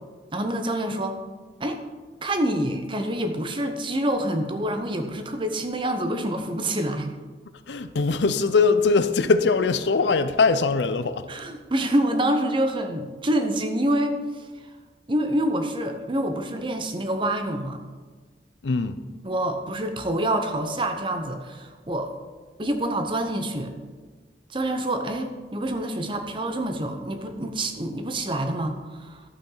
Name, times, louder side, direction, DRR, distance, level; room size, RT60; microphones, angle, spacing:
voice 1, 0.3-1.2 1.6-1.8 2.2-7.2 11.3-14.4 15.1-17.8 19.2-22.1 22.6-23.7 24.5-29.2, right 1 dB, 30° right, 0.8 m, -26 dB
voice 2, 7.7-11.3 18.6-19.0, left 4 dB, 80° left, 0.6 m, -21 dB
11.5 x 8.4 x 3.9 m
head